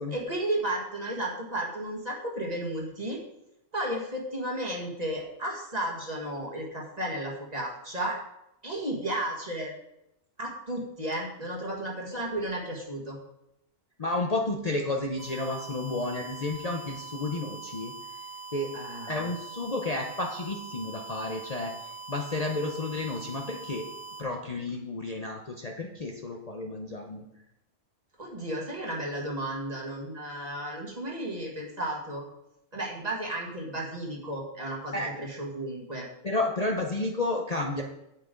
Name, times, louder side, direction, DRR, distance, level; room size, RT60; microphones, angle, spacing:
voice 1, 0.1-3.2 3.7-8.2 8.6-9.7 10.4-13.2 18.7-19.3 28.2-32.2 32.7-36.1, right 1 dB, 35° right, -2 dB, 1.8 m, -33 dB
voice 2, 14.0-17.9 18.5-18.7 19.0-21.7 22.1-23.8 24.2-27.3 34.9-35.1 36.2-37.8, left 2 dB, 35° left, 1 dB, 0.8 m, -31 dB
sound 1, 15.2-24.2, right 5 dB, 10° right, 1.5 m, -43 dB
8.9 x 8.3 x 3.8 m, 0.84 s
omnidirectional pair, 1.3 m